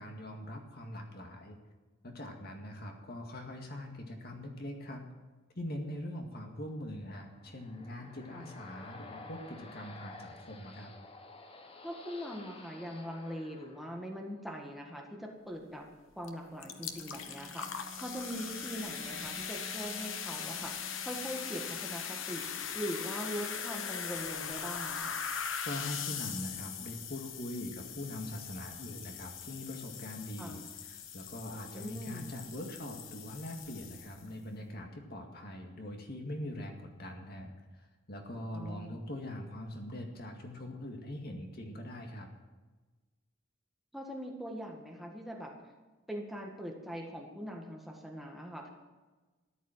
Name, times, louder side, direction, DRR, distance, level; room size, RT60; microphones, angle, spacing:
voice 1, 0.0-1.6 2.0-5.0 5.6-10.9 25.6-42.3, left 1 dB, 50° left, 2 dB, 2.1 m, -42 dB
sound 1, 7.0-14.5, left 2 dB, 30° left, 1.1 m, -52 dB
voice 2, 11.8-15.8 16.2-22.4 22.7-25.2 30.4-30.6 31.7-32.3 38.5-39.1 43.9-45.5 46.1-48.7, equal, ahead, 0 dB, 1.7 m, -41 dB
sound 2, 16.2-16.3 16.6-34.3, left 7 dB, 80° left, 1.2 m, -41 dB
sound 3, 16.5-22.9, right 3 dB, 40° right, 1.0 m, -52 dB
13.5 x 11.0 x 7.3 m, 1.3 s
head